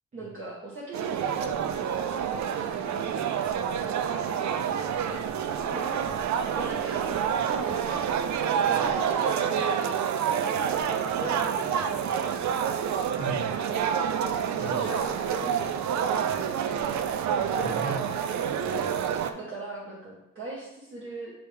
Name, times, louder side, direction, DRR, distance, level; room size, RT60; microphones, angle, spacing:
voice 1, 0.1-3.6 5.7-6.1 6.5-8.1 8.7-10.5 11.1-13.7 14.5-15.7 16.0-16.6 18.6-18.9 19.3-21.3, right 2 dB, 45° right, -5 dB, 1.2 m, -40 dB
sound 1, 0.9-19.3, right 8 dB, 70° right, 0.5 m, -28 dB
voice 2, 4.7-5.6 5.9-6.1 13.2-13.5 14.6-14.8 17.5-18.1, right 2 dB, 25° right, -2 dB, 1.5 m, -39 dB
8.8 x 3.3 x 3.3 m, 0.88 s
wide cardioid pair, 145°, 30 cm